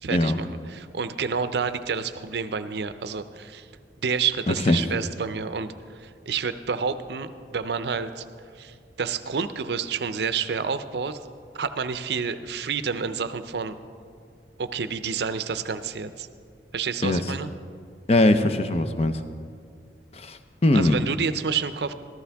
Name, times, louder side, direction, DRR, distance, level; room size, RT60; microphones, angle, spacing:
voice 1, 0.0-3.7 4.0-8.2 8.5-11.2 11.5-13.8 14.6-16.3 16.7-17.5 20.7-21.9, right 6 dB, 70° right, 12 dB, 0.5 m, -29 dB
voice 2, 18.1-19.2 20.2-21.0, left 1 dB, 35° left, 10 dB, 0.6 m, -21 dB
14.0 x 14.0 x 3.5 m, 2.2 s
head